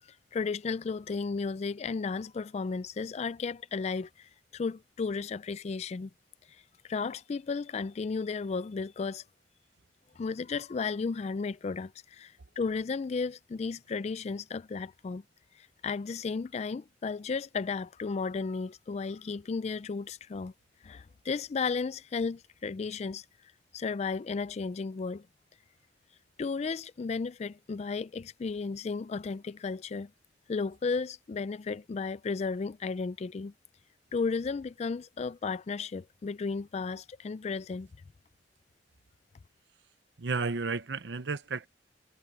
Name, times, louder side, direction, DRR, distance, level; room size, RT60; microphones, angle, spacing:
voice 1, 0.3-6.1 6.8-9.2 10.2-15.2 15.6-20.5 20.8-23.2 23.7-25.3 26.4-30.1 30.5-33.5 34.1-37.9, left 4 dB, 35° left, 0.3 m, -34 dB
voice 2, 40.2-41.7, right 4 dB, 70° right, 0.8 m, -32 dB
head